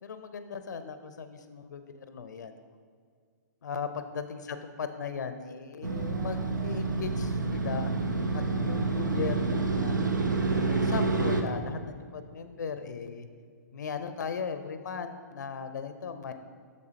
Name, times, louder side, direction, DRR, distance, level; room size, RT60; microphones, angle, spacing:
voice 1, 0.0-2.6 3.6-8.0 8.3-10.1 10.7-13.3 13.7-16.3, left 6 dB, 75° left, 9 dB, 0.5 m, -37 dB
Motorcycle, 5.8-11.4, right 3 dB, 85° right, 0.8 m, -28 dB
8.3 x 6.5 x 2.8 m, 2.1 s
hypercardioid pair, 120°, 10 cm